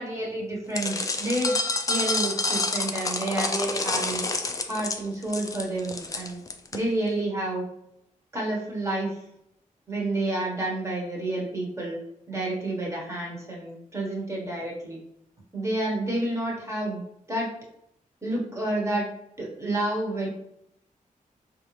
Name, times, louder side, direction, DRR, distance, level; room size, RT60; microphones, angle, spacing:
voice 1, 0.0-1.5 1.9-6.4 6.7-7.6 8.3-9.2 9.9-12.0 12.3-15.0 15.5-17.0 17.3-17.5 18.2-19.1 19.4-20.3, right 1 dB, 20° right, -3 dB, 1.1 m, -29 dB
sound 1, 0.7-6.8, left 3 dB, 25° left, 0.4 m, -28 dB
3.7 x 2.5 x 3.1 m, 0.79 s
wide cardioid pair, 135°, 14 cm